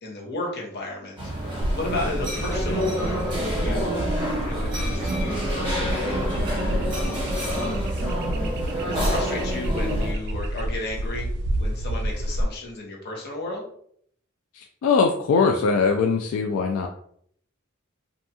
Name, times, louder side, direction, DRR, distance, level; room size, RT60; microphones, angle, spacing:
voice 1, 0.0-1.2 1.4-4.0 4.4-6.9 7.4-7.9 8.8-11.3 11.6-13.7, left 2 dB, 55° left, -1 dB, 0.8 m, -34 dB
sound 1, 1.2-10.1, equal, 25° right, 1.0 m, -28 dB
sound 2, 1.6-12.4, right 1 dB, 55° right, 0.3 m, -29 dB
voice 2, 14.5-16.9, left 5 dB, 85° left, 3 dB, 0.3 m, -21 dB
2.6 x 2.2 x 2.7 m, 0.65 s
head